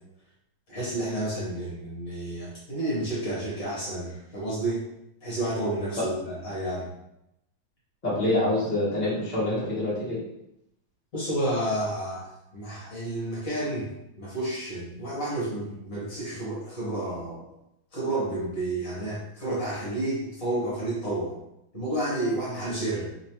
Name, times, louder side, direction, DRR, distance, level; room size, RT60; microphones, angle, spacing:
voice 1, 0.7-4.9 5.2-6.9 11.1-13.9 14.2-17.5 17.9-21.3 21.7-23.1, right 1 dB, 45° left, -8 dB, 1.7 m, -30 dB
voice 2, 8.0-10.2, left 1 dB, 25° left, -9 dB, 1.1 m, -26 dB
3.6 x 3.0 x 3.0 m, 0.82 s
omnidirectional pair, 2.4 m